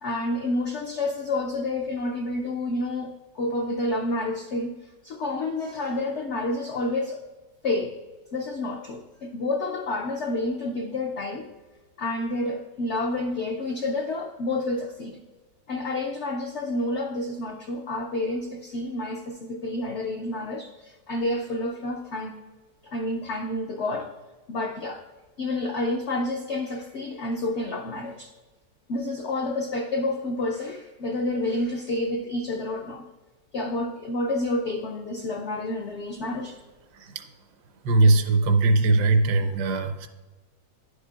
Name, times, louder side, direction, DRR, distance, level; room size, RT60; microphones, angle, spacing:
voice 1, 0.0-3.1 3.3-4.7 5.0-7.3 7.6-7.9 8.3-11.5 12.0-15.2 15.7-22.4 22.8-24.1 24.5-25.0 25.4-28.3 28.9-33.0 33.5-36.6, left 2 dB, 75° left, 2 dB, 0.6 m, -29 dB
voice 2, 37.8-40.1, right 2 dB, 75° right, 8 dB, 1.2 m, -20 dB
10.5 x 6.4 x 2.4 m, 1.2 s
omnidirectional pair, 1.9 m